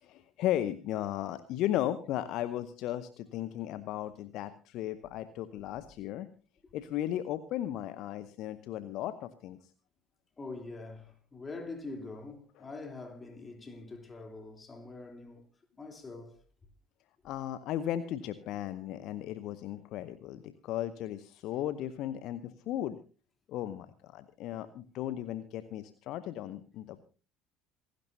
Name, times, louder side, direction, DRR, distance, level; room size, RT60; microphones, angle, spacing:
voice 1, 0.0-6.3 6.7-9.6 12.6-12.7 17.2-23.0 23.5-27.0, left 12 dB, 55° left, 0.8 m, -36 dB
voice 2, 10.4-15.4 15.8-16.4, left 3 dB, 20° left, 3.4 m, -44 dB
27.0 x 11.5 x 2.7 m
figure-of-eight pair, 60°, 0 cm